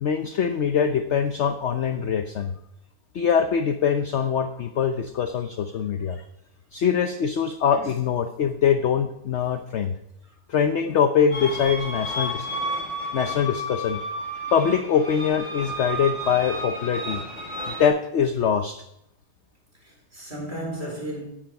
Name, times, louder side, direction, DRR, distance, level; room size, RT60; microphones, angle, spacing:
voice 1, 0.0-2.5 3.1-6.2 6.7-10.0 10.5-12.5 13.1-14.0 14.5-17.2 17.7-18.8, left 7 dB, 55° left, 0.9 m, -23 dB
sound 1, 11.3-17.9, equal, 30° left, 7.2 m, -32 dB
voice 2, 19.8-21.3, right 1 dB, 40° right, 4.9 m, -34 dB
15.0 x 10.5 x 5.3 m
omnidirectional pair, 1.6 m